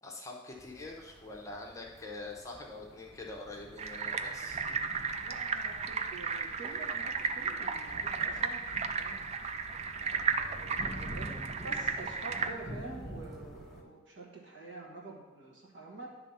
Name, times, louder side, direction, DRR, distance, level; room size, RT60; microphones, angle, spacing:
voice 1, 0.0-4.6, left 2 dB, 15° left, -1 dB, 0.8 m, -44 dB
sound 1, 0.5-13.8, equal, ahead, 1.2 m, -48 dB
sound 2, 3.8-12.5, right 5 dB, 35° right, 0.4 m, -34 dB
voice 2, 5.2-9.2 9.7-11.3 11.6-16.1, right 2 dB, 65° right, -3 dB, 1.7 m, -47 dB
10.0 x 3.4 x 5.5 m, 1.2 s
head